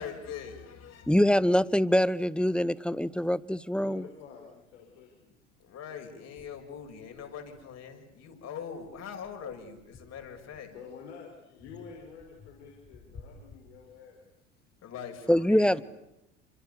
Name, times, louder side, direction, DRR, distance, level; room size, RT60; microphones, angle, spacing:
voice 1, 0.0-1.2 5.6-10.7 14.8-15.8, left 7 dB, 45° left, 7.1 m, -42 dB
voice 2, 1.1-4.0 15.3-15.8, equal, 5° left, 1.0 m, -24 dB
voice 3, 3.8-5.3 10.6-14.2, left 6 dB, 70° left, 6.4 m, -49 dB
sound 1, 5.6-5.7 6.4-8.2 8.7-11.0 11.6-14.4, left 4 dB, 25° left, 3.4 m, -55 dB
29.5 x 27.0 x 7.1 m
figure-of-eight pair, 70°, 35 cm